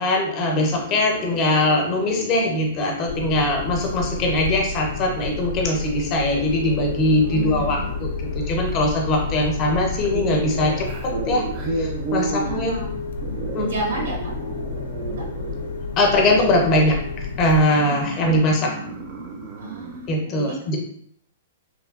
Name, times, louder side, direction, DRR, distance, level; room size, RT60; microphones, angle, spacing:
voice 1, 0.0-11.4 11.7-12.7 13.5-13.7 16.0-17.0 17.4-18.7 20.1-20.8, left 1 dB, 30° left, 1 dB, 0.5 m, -21 dB
sound 1, 0.5-20.1, right 3 dB, 35° right, 0.4 m, -34 dB
sound 2, 3.1-17.6, left 4 dB, 80° left, 0.4 m, -30 dB
voice 2, 7.3-8.0 12.4-13.0 13.6-14.3 15.2-15.3 19.5-20.6, right 3 dB, 90° right, 0 dB, 0.8 m, -32 dB
3.0 x 2.2 x 2.3 m, 0.66 s
hypercardioid pair, 160°, 0 cm